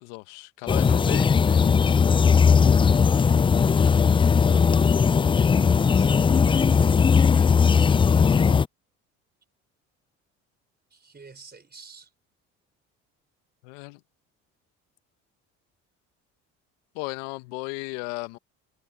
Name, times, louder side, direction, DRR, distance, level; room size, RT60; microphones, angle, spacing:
voice 1, 0.0-2.0 13.6-14.0 16.9-18.4, left 25 dB, 80° left, 1.3 m, -36 dB
sound 1, 0.7-8.7, left 6 dB, 15° left, 0.3 m, -18 dB
voice 2, 4.3-4.8 5.5-7.6 8.1-8.6 10.9-12.1, right 4 dB, 25° right, 4.0 m, -47 dB
hypercardioid pair, 65°, 37 cm